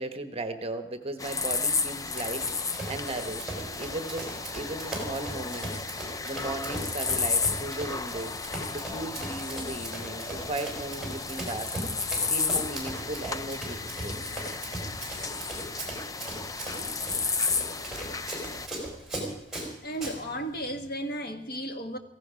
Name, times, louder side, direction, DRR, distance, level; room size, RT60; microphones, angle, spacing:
voice 1, 0.0-5.7 6.0-8.3 8.7-14.2, right 2 dB, 30° right, 8 dB, 1.1 m, -37 dB
sound 1, 1.2-18.7, left 4 dB, 15° left, 0.5 m, -33 dB
Run, 2.1-20.2, right 1 dB, 5° right, 4.9 m, -38 dB
voice 2, 19.8-22.0, right 1 dB, 50° left, 6 dB, 1.7 m, -34 dB
16.5 x 16.0 x 5.0 m, 0.81 s
head